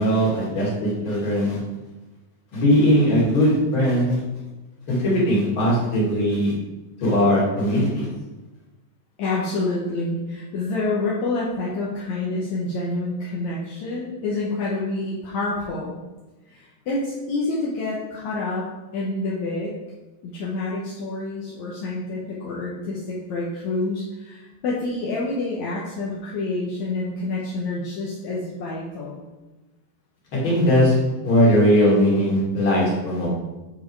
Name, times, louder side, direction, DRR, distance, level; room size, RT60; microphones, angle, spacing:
voice 1, 0.0-1.6 2.5-4.2 4.9-6.5 7.0-8.1 30.3-31.0 31.2-33.3, equal, 35° left, -5 dB, 2.6 m, -19 dB
voice 2, 9.2-15.9 16.5-18.6 18.9-19.7 20.2-29.3, left 2 dB, 70° left, -5 dB, 1.8 m, -28 dB
8.2 x 4.7 x 4.7 m, 1.1 s
omnidirectional pair, 4.5 m